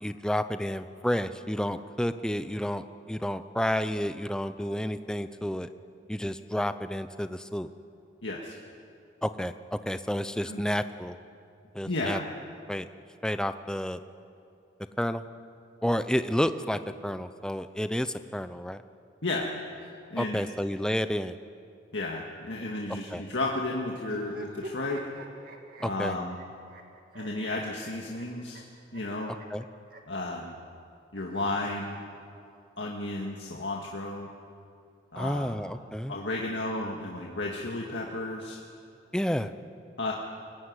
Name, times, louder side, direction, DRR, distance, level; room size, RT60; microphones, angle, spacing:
voice 1, 0.0-5.7 6.1-7.7 9.2-11.2 11.7-12.2 12.7-12.9 13.2-14.0 15.0-15.2 15.8-18.8 20.2-21.4 23.1-23.2 25.8-26.1 29.5-29.6 35.2-36.1 39.1-39.5, equal, 5° left, 11 dB, 0.6 m, -30 dB
voice 2, 8.2-8.6 10.4-10.6 11.8-12.2 19.2-19.5 19.8-20.4 21.9-25.1 25.8-26.4 27.1-28.6 28.9-29.4 30.1-30.6 31.1-32.0 32.8-34.3 35.1-35.6 36.1-38.6 40.0-40.1, left 2 dB, 75° left, -1 dB, 1.9 m, -33 dB
sound 1, 24.0-30.2 31.2-32.3, right 1 dB, 50° right, 2.2 m, -45 dB
22.5 x 16.0 x 9.6 m, 2.5 s
head